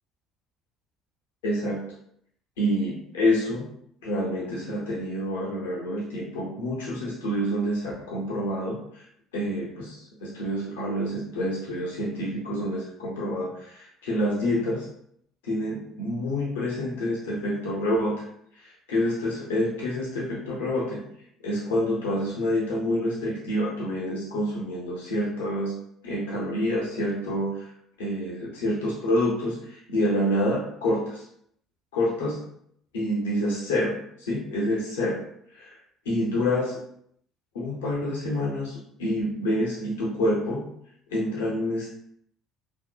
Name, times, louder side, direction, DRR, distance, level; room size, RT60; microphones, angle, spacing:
voice 1, 1.4-1.8 2.6-3.6 4.0-9.1 9.3-14.9 15.4-18.2 18.5-21.0 21.4-25.7 26.0-27.7 28.0-31.2 31.9-32.4 32.9-35.2 35.5-35.8 36.0-36.8 37.5-40.7 41.1-42.0, left 1 dB, 80° left, -5 dB, 0.6 m, -27 dB
2.7 x 2.0 x 2.3 m, 0.70 s
hypercardioid pair, 60°, 0 cm